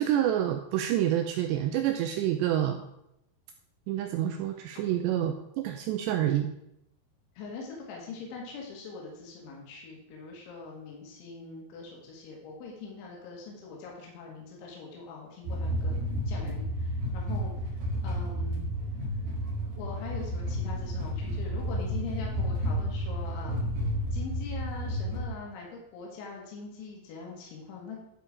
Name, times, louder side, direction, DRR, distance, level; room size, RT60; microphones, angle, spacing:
voice 1, 0.0-2.8 3.9-6.5, right 11 dB, 90° right, 5 dB, 2.4 m, -28 dB
voice 2, 7.4-16.0 16.3-18.6 19.8-23.7 24.1-28.0, left 4 dB, 75° left, -2 dB, 4.2 m, -42 dB
sound 1, 15.4-25.2, equal, 70° right, 1.4 m, -31 dB
12.5 x 4.6 x 4.8 m, 0.80 s
omnidirectional pair, 5.5 m